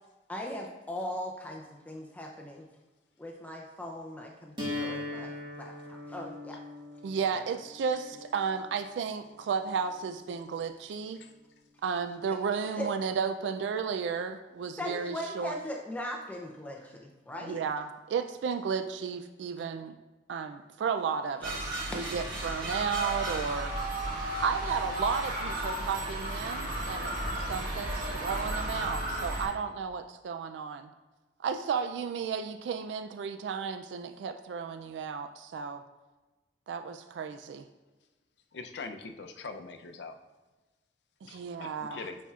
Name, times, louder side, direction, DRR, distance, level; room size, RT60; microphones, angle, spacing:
voice 1, 0.3-2.7 3.2-6.6 7.3-7.4 12.8-12.9 14.8-17.6 21.9-22.0, left 1 dB, 10° left, 0 dB, 0.5 m, -39 dB
sound 1, 4.6-10.5, left 2 dB, 25° right, 1.5 m, -41 dB
voice 2, 7.0-11.2 11.8-15.6 17.4-19.9 20.3-23.7 24.4-30.9 31.4-35.8 36.7-37.6 41.2-42.0, right 6 dB, 80° right, 8 dB, 0.3 m, -33 dB
sound 2, 21.4-29.4, right 1 dB, 55° right, 1.7 m, -34 dB
voice 3, 38.5-40.2 41.2-42.2, left 4 dB, 70° left, 6 dB, 0.5 m, -42 dB
9.7 x 4.3 x 2.4 m, 1.2 s
head